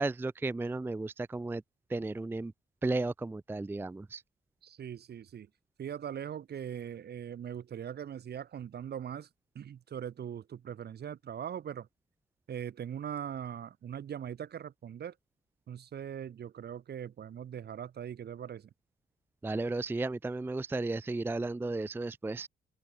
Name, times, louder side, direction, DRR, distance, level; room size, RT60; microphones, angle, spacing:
voice 1, 0.0-1.6 1.9-2.5 2.8-4.2 19.4-22.5, right 2 dB, 10° right, 0.4 m, -34 dB
voice 2, 4.6-5.5 5.8-9.3 9.5-11.9 12.5-15.1 15.7-18.7, right 9 dB, 55° right, 1.6 m, -41 dB
open air
cardioid pair, 90°, 20 cm